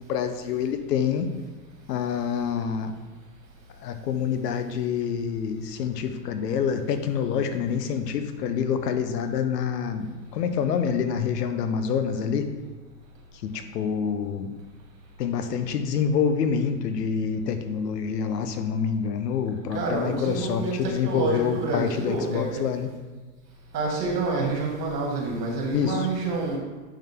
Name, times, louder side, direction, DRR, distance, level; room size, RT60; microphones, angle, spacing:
voice 1, 0.1-1.3 1.9-2.9 3.8-12.5 13.4-14.5 15.2-22.9 25.7-26.1, left 7 dB, 80° left, 8 dB, 0.9 m, -27 dB
voice 2, 19.7-22.6 23.7-26.6, right 3 dB, 85° right, -1 dB, 2.2 m, -28 dB
10.0 x 3.8 x 3.6 m, 1.4 s
hypercardioid pair, 90°, 47 cm